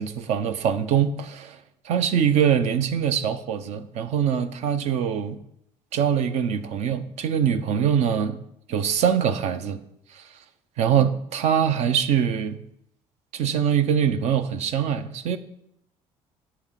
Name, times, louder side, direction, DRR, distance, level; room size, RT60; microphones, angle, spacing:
voice 1, 0.0-1.6 1.8-5.4 5.9-8.4 8.7-9.8 10.1-10.2 10.8-12.6 13.3-15.4, right 8 dB, 65° right, 0.9 m, -23 dB
10.5 x 4.3 x 7.5 m
cardioid pair, 110°, 12 cm